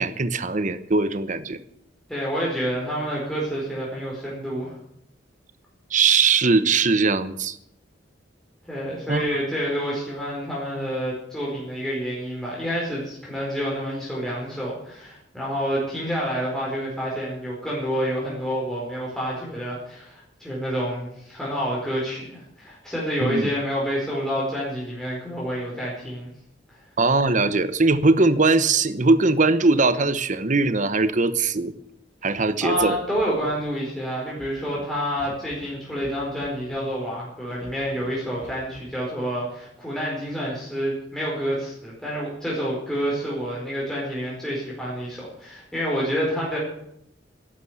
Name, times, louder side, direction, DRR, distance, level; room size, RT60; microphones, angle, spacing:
voice 1, 0.0-1.6 5.9-7.6 9.1-9.3 23.2-23.5 27.0-31.7 32.2-33.0, right 3 dB, 45° right, 12 dB, 1.0 m, -20 dB
voice 2, 2.1-4.8 8.7-26.3 32.3-32.4 32.6-46.6, equal, 5° left, -6 dB, 4.6 m, -28 dB
Scratching (performance technique), 32.3-32.4 32.6-32.9 33.1-33.6 34.2-34.8 35.2-35.6 35.9-36.1 36.4-36.8 37.5-38.1 38.4-38.8, equal, 40° left, 3.4 m, -44 dB
12.0 x 11.5 x 8.0 m, 0.75 s
head